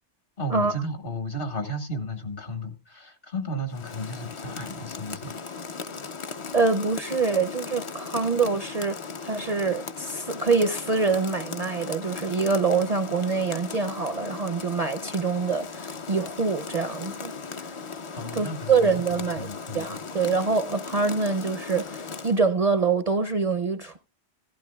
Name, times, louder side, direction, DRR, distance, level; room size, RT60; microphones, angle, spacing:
voice 1, 0.4-5.3 18.1-20.0, equal, 55° left, 1.7 m, -34 dB
Rain, 3.7-22.4, left 5 dB, 35° left, 0.5 m, -37 dB
voice 2, 6.5-17.3 17.6-17.7 18.3-19.5 19.7-24.0, right 4 dB, 45° right, 0.6 m, -25 dB
16.0 x 12.0 x 2.2 m
omnidirectional pair, 1.1 m